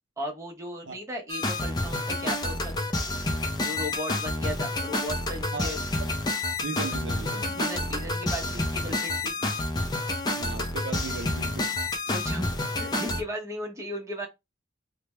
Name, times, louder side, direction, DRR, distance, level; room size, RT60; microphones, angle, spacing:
voice 1, 0.2-2.7 3.6-5.8 7.5-9.3 12.1-12.5 12.8-14.3, equal, 15° right, 0.7 m, -36 dB
sound 1, 1.3-13.2, left 2 dB, 20° left, 0.4 m, -29 dB
voice 2, 6.6-7.6 10.4-11.8, right 4 dB, 60° right, 0.4 m, -37 dB
3.2 x 2.1 x 3.1 m
head